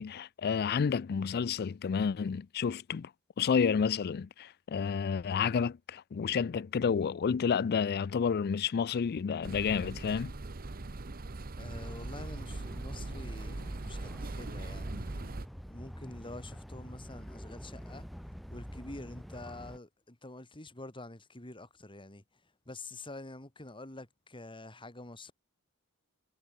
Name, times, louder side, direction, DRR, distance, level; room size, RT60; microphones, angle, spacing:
voice 1, 0.0-3.1 3.4-10.3, left 6 dB, 45° left, 0.4 m, -30 dB
sound 1, 9.4-15.5, right 2 dB, 40° right, 0.9 m, -41 dB
voice 2, 11.6-15.2 15.7-18.1 18.5-22.2 22.7-25.3, left 2 dB, 25° left, 3.1 m, -47 dB
sound 2, 11.7-19.8, equal, ahead, 0.7 m, -46 dB
head